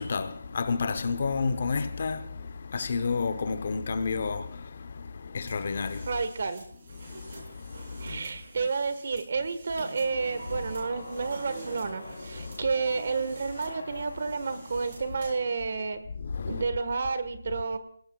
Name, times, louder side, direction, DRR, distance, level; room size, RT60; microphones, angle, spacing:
voice 1, 0.0-6.1 7.0-8.2 12.4-12.6 16.2-16.6, left 4 dB, 50° left, 0.8 m, -31 dB
sound 1, 5.5-15.5, right 3 dB, 35° right, 7.2 m, -52 dB
voice 2, 6.0-6.6 8.0-16.0 16.5-17.8, right 4 dB, 55° right, 1.4 m, -30 dB
Sliding door, 6.7-13.2, right 2 dB, 75° right, 6.0 m, -48 dB
sound 2, 9.9-15.6, left 2 dB, 85° left, 3.7 m, -44 dB
23.5 x 18.5 x 2.4 m
hypercardioid pair, 170°, 0 cm